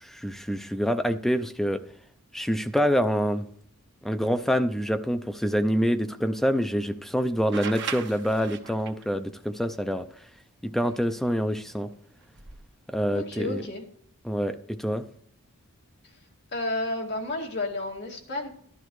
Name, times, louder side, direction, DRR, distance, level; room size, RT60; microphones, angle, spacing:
voice 1, 0.0-1.8 2.3-3.5 4.0-10.0 10.6-11.9 12.9-13.6 14.2-15.0, equal, ahead, 9 dB, 0.4 m, -26 dB
sound 1, 7.5-9.0 10.9-11.0 12.2-12.6, right 7 dB, 60° right, 1.1 m, -37 dB
voice 2, 13.1-13.8 16.5-18.5, left 2 dB, 55° left, 0 dB, 2.2 m, -31 dB
12.0 x 11.5 x 3.1 m, 0.63 s
head